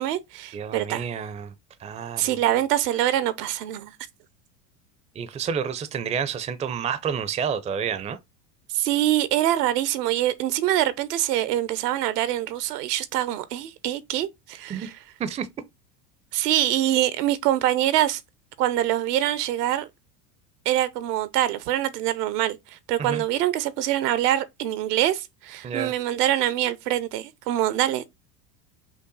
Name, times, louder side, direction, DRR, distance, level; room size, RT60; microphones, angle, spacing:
voice 1, 0.0-1.0 2.2-3.9 8.7-14.9 16.3-18.2 18.6-19.9 20.7-28.1, right 13 dB, 80° right, 0.8 m, -24 dB
voice 2, 0.5-1.5 1.8-2.2 5.2-8.2 14.7-14.9 15.2-15.5 23.0-23.2 25.6-25.9, right 7 dB, 15° right, 0.4 m, -29 dB
5.6 x 2.1 x 3.9 m
hypercardioid pair, 90°, 47 cm